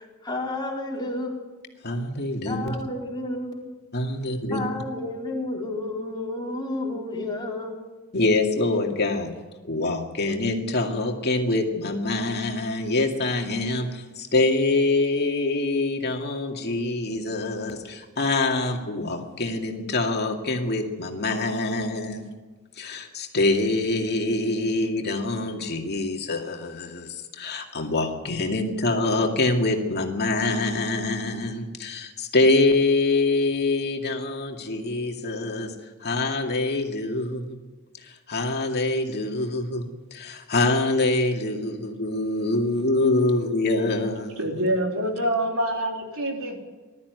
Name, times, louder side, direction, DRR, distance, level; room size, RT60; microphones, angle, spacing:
voice 1, 0.0-1.4 2.4-3.7 4.5-7.8, left 2 dB, 20° left, 4.2 m, -31 dB
voice 2, 1.8-2.8 3.9-4.6 8.1-9.3 9.7-22.3 22.8-35.7 36.0-37.6 38.0-44.5, left 2 dB, 50° left, 2.3 m, -25 dB
voice 3, 44.4-46.6, right 1 dB, 65° right, 3.7 m, -26 dB
21.0 x 13.0 x 9.5 m
head